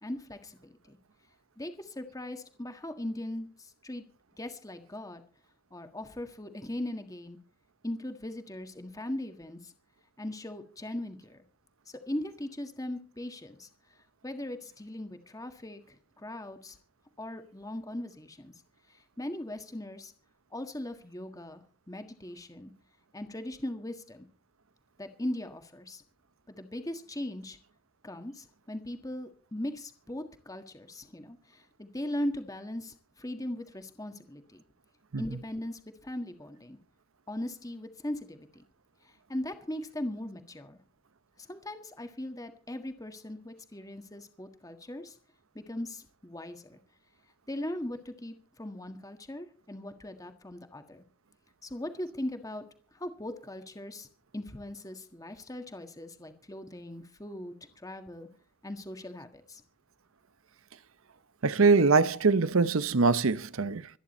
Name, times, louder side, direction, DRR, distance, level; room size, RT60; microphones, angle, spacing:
voice 1, 0.0-1.0 1.6-4.0 4.4-5.2 5.7-7.4 7.8-9.7 10.2-11.4 11.9-13.7 14.2-16.8 17.2-18.5 19.2-20.1 20.5-22.7 23.1-24.3 25.0-26.0 26.5-27.6 28.0-34.6 35.2-36.8 37.3-38.6 39.3-40.8 41.4-45.1 45.5-46.8 47.5-51.0 51.6-52.6 52.9-54.1 54.3-58.3 58.6-59.6, left 1 dB, 15° left, 1.6 m, -39 dB
voice 2, 61.4-63.9, right 4 dB, 80° right, 0.8 m, -23 dB
25.5 x 10.0 x 4.3 m
head